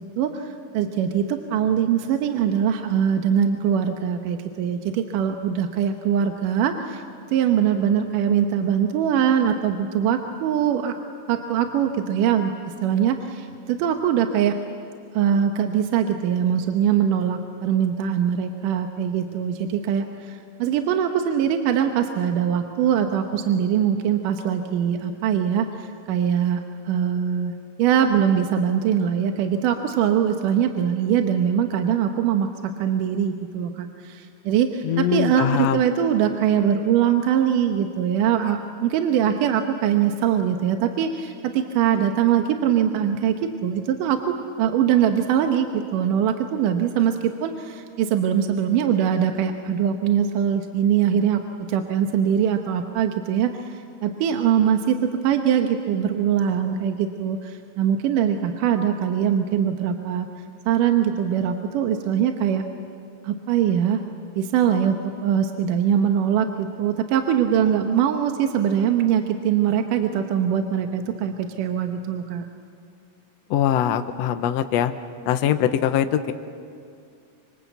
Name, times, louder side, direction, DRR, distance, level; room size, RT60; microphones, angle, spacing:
voice 1, 0.2-7.0 7.3-11.0 11.3-12.5 12.8-14.6 15.1-26.6 26.9-27.5 27.8-32.5 32.8-43.3 43.6-60.3 60.7-62.6 63.2-64.0 64.4-72.5, right 8 dB, 75° right, 5 dB, 2.5 m, -22 dB
voice 2, 34.8-35.8 73.5-74.9 75.3-76.3, left 10 dB, 75° left, 9 dB, 1.6 m, -22 dB
26.0 x 25.0 x 8.1 m, 2.3 s
omnidirectional pair, 3.8 m